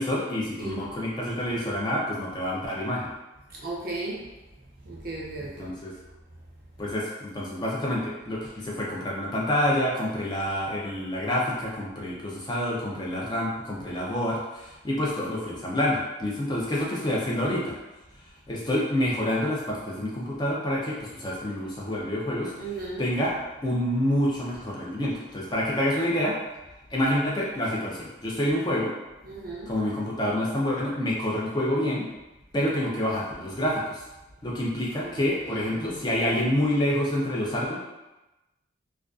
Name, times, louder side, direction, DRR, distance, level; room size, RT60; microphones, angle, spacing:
voice 1, 0.0-3.1 5.4-5.9 6.8-17.8 18.5-22.5 23.0-23.3 23.6-26.4 26.9-28.9 29.7-32.1 32.5-34.0 34.4-37.8, left 1 dB, 20° left, -4 dB, 0.3 m, -27 dB
voice 2, 0.6-1.0 3.5-4.3 4.8-5.7 22.6-23.1 29.2-29.7 35.0-35.1 35.5-36.0, right 3 dB, 50° right, -3 dB, 0.5 m, -36 dB
2.4 x 2.2 x 2.3 m, 1.0 s
head